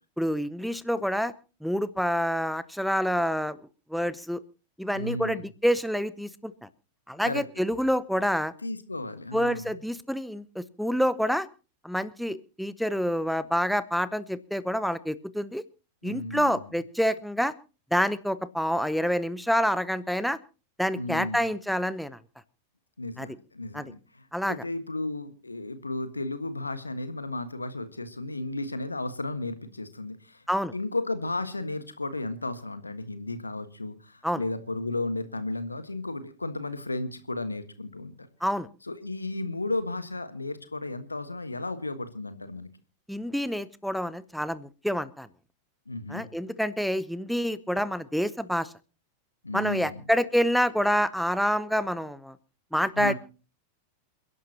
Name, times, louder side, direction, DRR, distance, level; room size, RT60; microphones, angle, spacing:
voice 1, 0.2-1.3 1.6-3.6 3.9-4.4 4.8-6.7 7.1-8.5 9.3-11.5 11.8-15.6 16.0-17.5 17.9-20.4 20.8-22.2 23.2-23.3 23.7-23.9 24.3-24.6 30.5-30.7 34.2-34.4 38.4-38.7 43.1-45.3 46.1-48.7 49.5-52.4 52.7-53.1, equal, ahead, 15 dB, 0.7 m, -27 dB
voice 2, 4.9-5.4 7.2-7.4 8.6-9.8 16.0-16.7 20.9-21.4 23.0-30.4 30.7-38.3 38.8-42.7 45.9-46.2 49.4-50.0 52.9-53.1, left 2 dB, 80° left, 11 dB, 1.5 m, -34 dB
28.5 x 11.0 x 2.9 m, 0.33 s
figure-of-eight pair, 90°, 0 cm